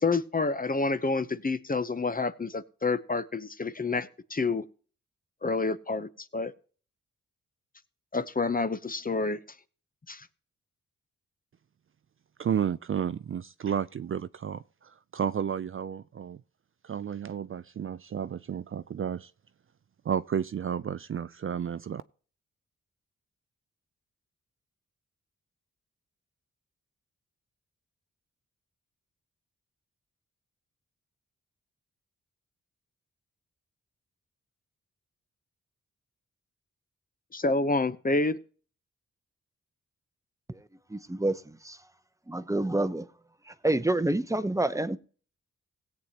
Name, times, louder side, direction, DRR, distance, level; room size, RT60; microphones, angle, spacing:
voice 1, 0.0-4.6 5.4-6.5 8.1-9.4 10.1-10.3 37.3-38.4, left 3 dB, 30° left, 0.8 m, -28 dB
voice 2, 12.4-14.6 15.1-16.4 16.8-19.3 20.1-22.0, right 8 dB, 45° right, 0.4 m, -32 dB
voice 3, 40.9-41.8 42.3-43.1 43.6-45.0, right 1 dB, 10° right, 0.8 m, -28 dB
17.0 x 8.2 x 2.9 m
cardioid pair, 60°, 31 cm